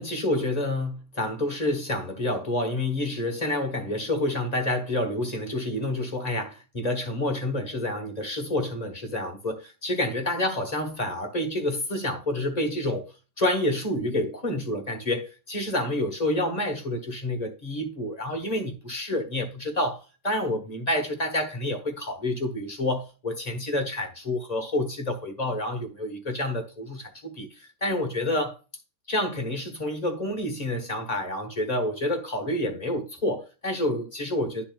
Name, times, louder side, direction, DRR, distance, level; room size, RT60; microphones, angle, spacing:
voice 1, 0.0-28.6 29.1-34.6, left 1 dB, 25° left, 1.5 m, -28 dB
12.5 x 4.3 x 2.3 m
omnidirectional pair, 1.8 m